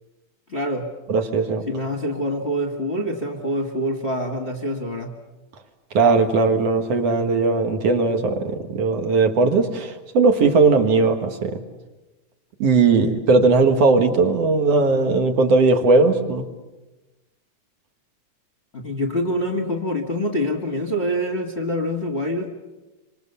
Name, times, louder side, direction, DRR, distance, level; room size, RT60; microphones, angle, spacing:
voice 1, 0.5-0.9 1.7-5.2 18.7-22.5, equal, 30° left, 3 dB, 1.4 m, -25 dB
voice 2, 1.1-1.6 5.9-11.6 12.6-16.4, right 3 dB, 55° right, 6 dB, 2.6 m, -18 dB
27.0 x 25.5 x 7.1 m, 1.1 s
omnidirectional pair, 3.7 m